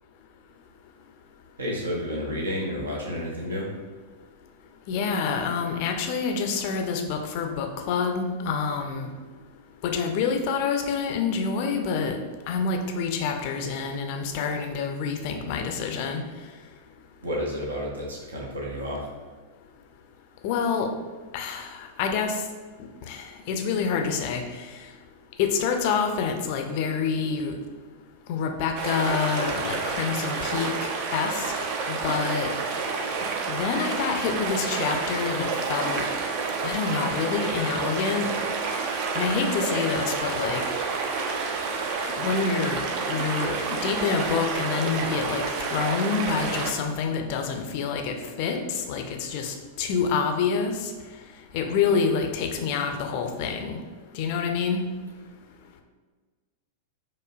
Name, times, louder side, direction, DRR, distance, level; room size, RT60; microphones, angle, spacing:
voice 1, 1.6-3.7 17.2-19.1, equal, 70° right, -3 dB, 0.8 m, -31 dB
voice 2, 4.9-9.1 9.8-12.2 12.5-16.2 20.4-20.9 21.3-22.4 23.1-24.7 25.4-27.5 28.3-31.5 31.9-32.5 33.5-36.0 36.6-38.3 39.1-40.6 42.2-45.4 45.7-50.9 51.5-53.8 54.1-54.8, left 5 dB, 45° left, 4 dB, 0.4 m, -27 dB
sound 1, 28.8-46.9, right 4 dB, 45° right, 0.4 m, -29 dB
4.9 x 2.1 x 2.3 m, 1.5 s
figure-of-eight pair, 95°, 0 cm